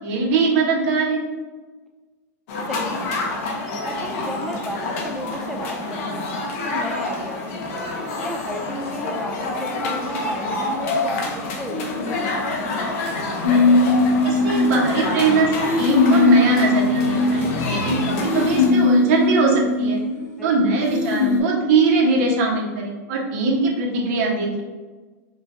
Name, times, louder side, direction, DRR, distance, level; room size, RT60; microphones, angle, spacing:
voice 1, 0.0-1.2 14.2-20.0 20.4-24.6, right 3 dB, 50° right, -2 dB, 1.3 m, -21 dB
sound 1, 2.5-18.7, left 2 dB, 55° left, 1.0 m, -27 dB
voice 2, 2.7-3.3 3.8-7.9 8.2-12.9 20.4-20.8, equal, ahead, 1 dB, 0.5 m, -34 dB
sound 2, 13.4-15.3 15.5-17.8 18.2-20.4 20.8-21.4, left 2 dB, 85° left, 1.3 m, -19 dB
5.4 x 3.1 x 2.8 m, 1.3 s
supercardioid pair, 145°, 9 cm